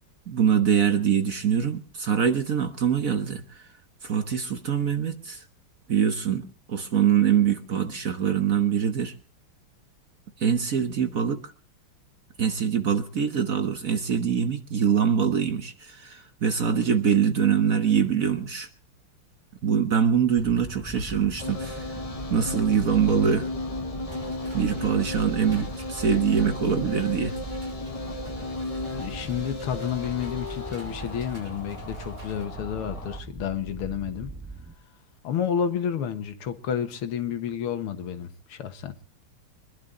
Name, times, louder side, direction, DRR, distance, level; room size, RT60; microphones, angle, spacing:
voice 1, 0.3-3.6 4.0-5.4 5.9-9.1 10.4-11.4 12.4-18.7 19.6-22.0 22.3-23.5 24.5-27.4, right 8 dB, 50° right, 1.2 m, -24 dB
sound 1, 20.4-34.7, right 2 dB, 10° right, 0.7 m, -40 dB
sound 2, 21.4-33.2, left 2 dB, 30° left, 0.7 m, -35 dB
sound 3, 24.1-32.4, equal, 35° right, 6.1 m, -49 dB
voice 2, 28.8-34.3 35.2-38.9, left 8 dB, 85° left, 2.2 m, -30 dB
24.0 x 11.5 x 3.8 m
omnidirectional pair, 2.4 m